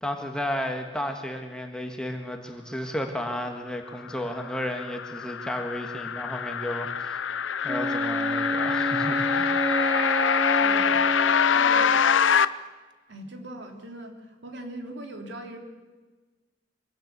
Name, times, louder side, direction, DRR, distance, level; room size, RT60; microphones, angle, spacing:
voice 1, 0.0-7.2 7.6-9.5, equal, 5° left, 3 dB, 1.7 m, -33 dB
sound 1, 4.1-12.5, left 7 dB, 85° left, 0.7 m, -25 dB
Wind instrument woodwind instrument, 7.6-12.5, right 1 dB, 25° right, 0.5 m, -30 dB
voice 2, 10.6-11.1 11.5-11.9 13.1-15.6, right 1 dB, 70° right, 3 dB, 3.0 m, -40 dB
24.5 x 16.0 x 6.8 m, 1.3 s
head